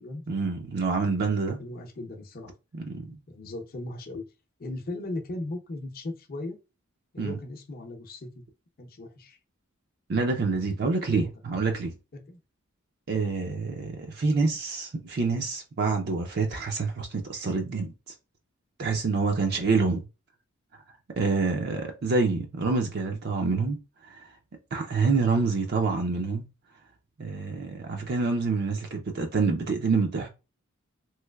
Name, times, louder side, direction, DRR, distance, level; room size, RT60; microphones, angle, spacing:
voice 1, 0.3-1.6 2.7-3.2 7.2-7.4 10.1-11.9 13.1-17.9 18.8-20.0 21.2-23.8 24.1-24.3 24.7-26.4 27.2-30.3, right 4 dB, 50° right, 0.5 m, -27 dB
voice 2, 1.6-2.5 3.3-4.2 4.6-6.6 7.1-8.4 8.8-9.4 11.1-11.3 12.1-12.4 19.4-19.5, left 2 dB, 45° left, 0.6 m, -37 dB
3.1 x 3.1 x 2.2 m
head